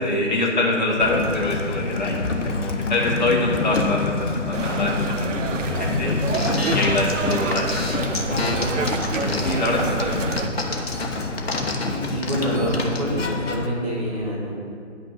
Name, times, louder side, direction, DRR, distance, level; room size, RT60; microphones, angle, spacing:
voice 1, 0.0-6.2 6.7-8.9 9.4-10.6, left 2 dB, 35° left, -2 dB, 1.5 m, -25 dB
Sliding door, 1.0-13.7, left 3 dB, 75° left, 0.9 m, -27 dB
sound 1, 4.5-10.5, right 5 dB, 85° right, 0.5 m, -29 dB
sound 2, 6.3-13.0, left 3 dB, 55° left, 1.1 m, -28 dB
voice 2, 11.9-13.2 13.5-14.5, equal, 25° right, -6 dB, 1.5 m, -26 dB
10.0 x 5.8 x 4.7 m, 2.4 s
figure-of-eight pair, 155°, 37 cm